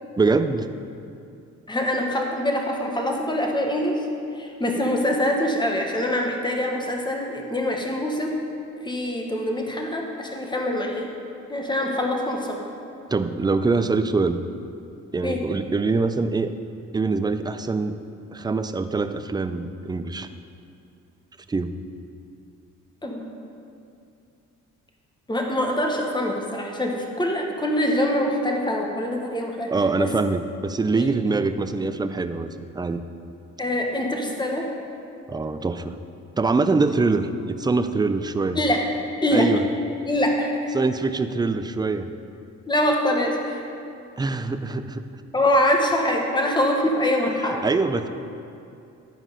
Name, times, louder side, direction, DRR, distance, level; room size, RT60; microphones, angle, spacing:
voice 1, 0.2-0.7 13.1-14.4 15.1-16.5 16.9-18.0 18.3-20.3 21.5-21.7 29.7-32.5 32.7-33.0 35.3-36.0 36.4-38.6 39.3-39.6 40.7-42.1 44.2-45.0 47.4-48.1, right 3 dB, 15° right, 10 dB, 0.4 m, -24 dB
voice 2, 1.7-4.0 4.3-8.3 8.8-11.1 11.5-12.6 15.2-15.4 23.0-23.2 25.3-29.7 30.0-30.1 30.9-31.1 33.6-34.7 38.5-38.8 39.2-39.5 40.0-40.7 42.7-43.6 45.3-47.6, left 1 dB, 15° left, 1 dB, 1.3 m, -24 dB
11.0 x 4.8 x 5.5 m, 2.6 s
cardioid pair, 90°, 30 cm